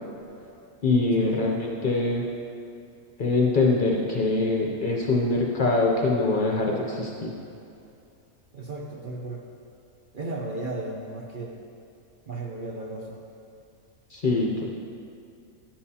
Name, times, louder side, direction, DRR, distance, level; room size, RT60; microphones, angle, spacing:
voice 1, 0.8-2.2 3.2-7.3 14.1-14.7, left 3 dB, 45° left, -1 dB, 0.7 m, -23 dB
voice 2, 8.5-9.5 10.1-11.6 12.3-13.2, right 2 dB, 50° right, -2 dB, 0.7 m, -35 dB
10.0 x 7.5 x 2.8 m, 2.6 s
omnidirectional pair, 1.4 m